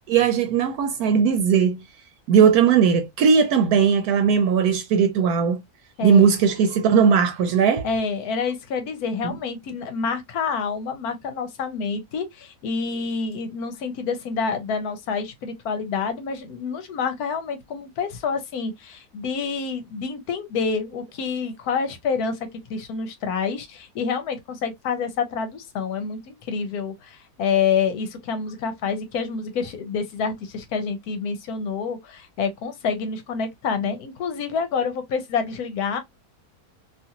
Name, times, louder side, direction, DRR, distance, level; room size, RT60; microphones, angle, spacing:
voice 1, 0.1-1.8 2.3-5.6 6.0-7.9 9.2-9.4, right 7 dB, 80° right, 1.1 m, -18 dB
voice 2, 7.8-36.0, left 5 dB, 85° left, 1.2 m, -27 dB
2.7 x 2.5 x 2.8 m
omnidirectional pair, 1.6 m